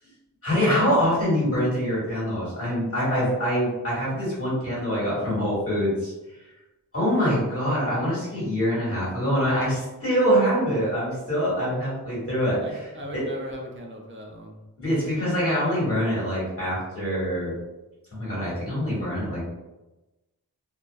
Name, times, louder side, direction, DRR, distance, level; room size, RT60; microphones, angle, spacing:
voice 1, 0.4-6.1 6.9-13.3 14.8-17.5 18.1-19.4, equal, 35° left, -7 dB, 1.4 m, -24 dB
voice 2, 12.6-14.6, equal, 30° right, 0 dB, 0.5 m, -38 dB
2.7 x 2.1 x 2.2 m, 1.1 s
wide cardioid pair, 65°, 39 cm